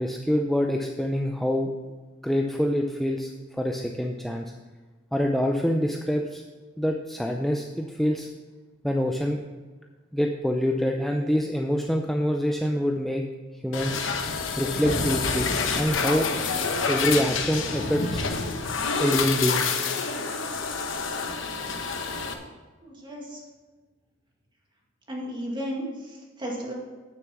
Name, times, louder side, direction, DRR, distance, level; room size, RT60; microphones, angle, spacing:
voice 1, 0.0-1.7 2.2-4.5 5.1-6.4 6.8-8.3 8.8-9.4 10.1-13.3 13.6-14.0 14.4-15.5 15.8-16.3 16.9-18.3 19.0-19.7, equal, ahead, 2 dB, 0.5 m, -25 dB
sound 1, 13.7-22.3, left 4 dB, 80° left, 1.1 m, -28 dB
voice 2, 22.8-23.4 25.1-26.7, equal, 25° right, -2 dB, 2.3 m, -34 dB
9.2 x 7.1 x 5.9 m, 1.3 s
head